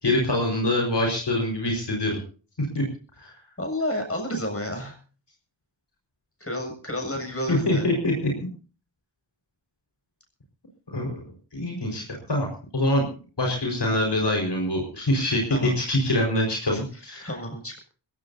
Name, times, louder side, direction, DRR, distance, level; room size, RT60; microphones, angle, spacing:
voice 1, 0.0-2.2 2.6-2.8 3.2-3.3 7.5-8.1 10.9-11.2 11.5-13.1 13.4-17.3, left 1 dB, 60° left, 0 dB, 5.0 m, -24 dB
voice 2, 3.6-5.0 6.4-7.9 15.5-15.8 16.7-16.8 17.2-17.8, left 1 dB, 30° left, 3 dB, 7.3 m, -30 dB
22.5 x 17.5 x 2.8 m, 0.38 s
wide cardioid pair, 60°, 45 cm